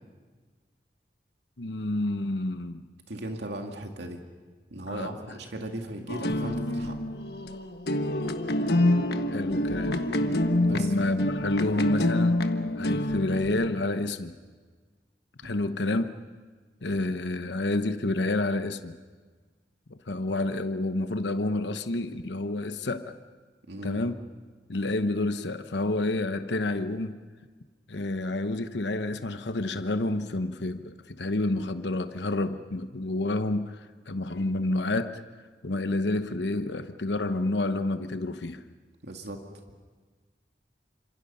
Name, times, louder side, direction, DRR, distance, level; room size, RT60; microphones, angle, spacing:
voice 1, 1.6-2.8 4.8-5.2 9.3-10.0 10.7-12.4 12.8-14.4 15.4-16.1 16.8-19.0 19.9-23.2 23.8-24.2 24.7-27.2 27.9-35.2 35.6-38.6, left 2 dB, 85° left, 9 dB, 1.0 m, -29 dB
voice 2, 3.1-4.2 4.7-7.0 10.6-10.9 23.7-24.0 39.0-39.4, right 1 dB, 80° right, 3 dB, 2.2 m, -37 dB
sound 1, 6.1-13.8, left 1 dB, 65° left, 1.4 m, -27 dB
28.5 x 26.5 x 5.6 m, 1.5 s
head